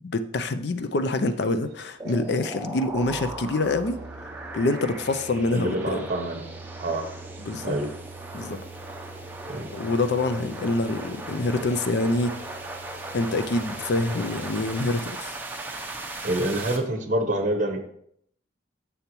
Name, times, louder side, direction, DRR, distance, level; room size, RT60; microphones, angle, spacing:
voice 1, 0.0-4.0 4.5-6.1 7.4-7.7 8.3-8.6 9.7-12.4 13.1-15.3, left 2 dB, 55° left, 10 dB, 0.5 m, -26 dB
sound 1, 0.8-14.8, right 3 dB, 55° right, 0.6 m, -46 dB
sound 2, 2.0-16.8, right 2 dB, 10° right, 0.7 m, -38 dB
voice 2, 5.5-6.4 6.8-7.0 7.6-7.9 9.4-9.7 16.2-17.8, right 1 dB, 40° right, 6 dB, 0.9 m, -26 dB
7.0 x 6.8 x 3.0 m, 0.69 s
head